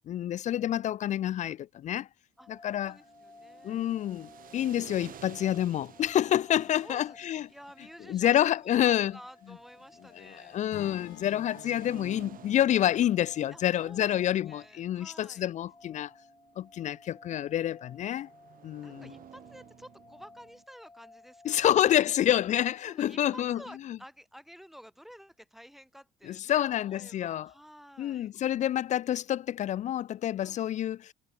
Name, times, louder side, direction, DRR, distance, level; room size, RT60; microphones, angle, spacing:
voice 1, 0.1-2.1 2.5-3.0 3.6-7.5 8.1-9.1 10.2-16.1 16.6-18.3 18.6-19.1 21.4-23.6 23.9-24.0 26.3-27.5 28.0-31.1, left 11 dB, 45° left, 0.4 m, -28 dB
sound 1, 2.4-22.0, left 3 dB, 15° left, 4.8 m, -57 dB
voice 2, 2.4-4.0 6.6-7.2 7.5-10.6 13.5-15.5 18.8-22.2 22.8-28.3 30.4-30.6, equal, ahead, 2.4 m, -52 dB
sound 2, 2.7-20.6, right 10 dB, 55° right, 3.3 m, -54 dB
Acoustic guitar / Strum, 10.7-14.9, left 21 dB, 90° left, 1.3 m, -51 dB
cardioid pair, 110°, 17 cm